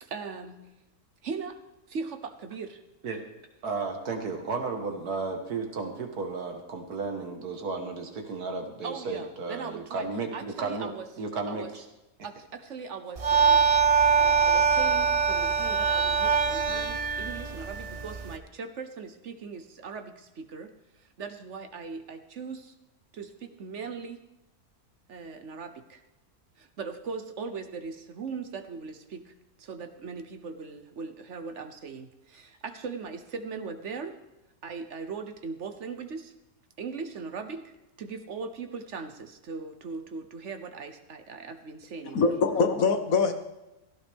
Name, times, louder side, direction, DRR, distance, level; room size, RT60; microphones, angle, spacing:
voice 1, 0.0-0.7 1.2-1.6 1.9-2.8 8.8-11.1 11.5-11.7 12.2-13.7 14.2-20.7 21.0-22.7 23.1-24.2 25.1-26.0 26.6-29.3 29.6-34.1 34.6-36.3 36.8-37.7 38.0-42.2, right 5 dB, 55° right, 1.1 m, -39 dB
voice 2, 3.6-10.9 11.2-11.8, right 4 dB, 80° right, 2.1 m, -33 dB
sound 1, 13.2-18.4, right 6 dB, 35° right, 0.5 m, -23 dB
voice 3, 42.1-43.3, left 4 dB, 65° left, 1.5 m, -23 dB
16.5 x 15.0 x 3.5 m
omnidirectional pair, 1.6 m